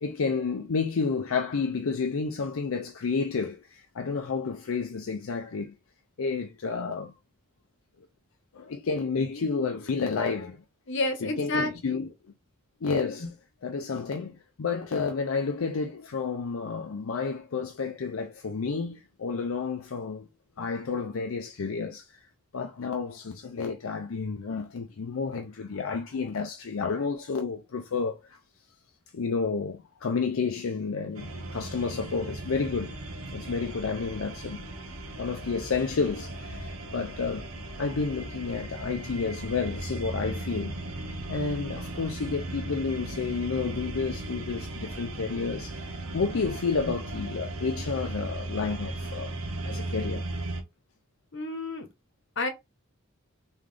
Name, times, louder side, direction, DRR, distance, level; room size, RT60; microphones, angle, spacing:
voice 1, 0.0-5.8 6.2-7.1 8.5-10.6 11.2-12.1 12.8-13.3 13.6-20.3 20.6-22.2 22.5-28.4 29.1-32.9 33.3-34.7 35.1-37.5 37.8-40.8 41.3-49.4 49.6-50.2, left 5 dB, 75° left, 0.5 m, -30 dB
voice 2, 10.9-12.0 51.3-51.9 52.4-52.5, left 2 dB, 60° left, 1.0 m, -30 dB
sound 1, 31.1-50.6, right 2 dB, 75° right, 0.8 m, -37 dB
3.7 x 3.1 x 3.3 m
head